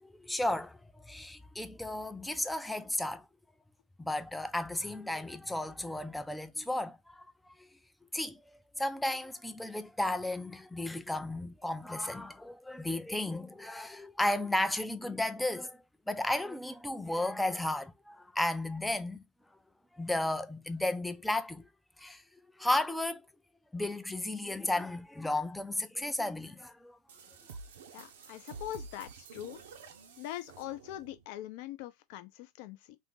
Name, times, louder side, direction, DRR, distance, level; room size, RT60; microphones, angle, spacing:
voice 1, 0.0-3.3 4.0-7.7 8.1-8.4 8.8-19.2 19.9-21.6 22.0-22.2 22.6-23.3 23.7-27.0, left 1 dB, 5° left, 0.4 m, -34 dB
sound 1, 27.1-31.2, right 4 dB, 90° right, 0.7 m, -49 dB
voice 2, 27.9-29.6 30.2-33.0, left 13 dB, 60° left, 0.6 m, -42 dB
2.6 x 2.5 x 3.7 m
supercardioid pair, 135°, 0 cm